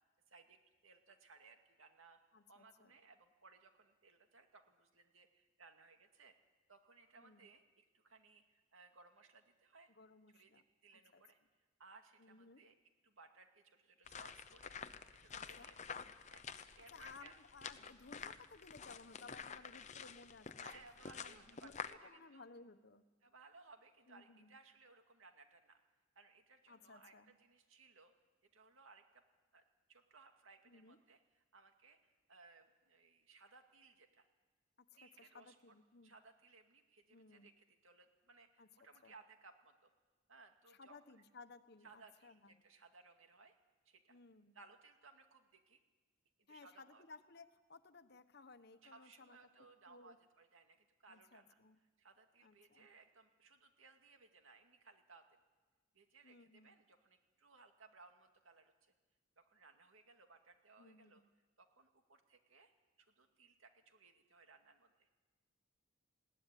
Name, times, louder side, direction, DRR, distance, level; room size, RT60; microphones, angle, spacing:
voice 1, 0.3-2.2 2.5-6.4 6.7-9.9 10.3-11.4 11.8-12.8 13.0-16.0 16.3-16.4 16.8-17.3 20.6-22.5 23.2-25.8 26.2-28.1 28.5-29.2 29.5-29.6 29.9-34.3 35.0-35.6 36.0-39.9 40.3-41.2 41.8-43.6 43.9-44.2 44.5-45.8 46.4-47.0 48.8-51.6 52.0-55.2 55.9-58.9 59.4-61.2 61.6-62.7 63.0-65.1, right 4 dB, 85° right, 5 dB, 2.3 m, -63 dB
voice 2, 2.3-2.9 7.2-7.5 9.9-10.6 10.9-11.2 12.2-12.7 15.3-15.7 16.9-20.7 21.1-23.0 24.1-24.5 26.7-27.4 30.7-31.0 34.9-36.1 37.1-37.5 38.6-38.7 39.0-39.1 40.7-42.6 44.1-44.5 46.5-49.4 49.9-50.2 51.1-51.8 52.4-52.9 56.2-56.7 60.8-61.3, left 4 dB, 55° left, 11 dB, 1.1 m, -59 dB
sound 1, 14.1-21.9, left 6 dB, 35° left, 0.8 m, -49 dB
20.0 x 17.0 x 10.0 m, 1.3 s
head